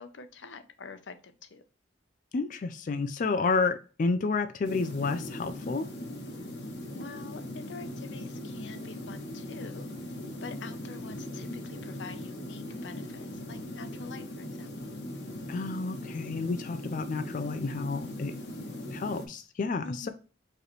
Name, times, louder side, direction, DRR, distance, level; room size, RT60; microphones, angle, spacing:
voice 1, 0.0-1.6 6.9-9.9 10.4-14.9 19.8-20.1, left 4 dB, 85° left, 10 dB, 0.6 m, -46 dB
voice 2, 2.3-5.9 15.5-18.3 18.9-20.1, left 4 dB, 45° left, 9 dB, 0.4 m, -30 dB
sound 1, 4.6-19.3, left 1 dB, 65° left, 1.1 m, -40 dB
4.7 x 3.2 x 3.1 m, 0.35 s
head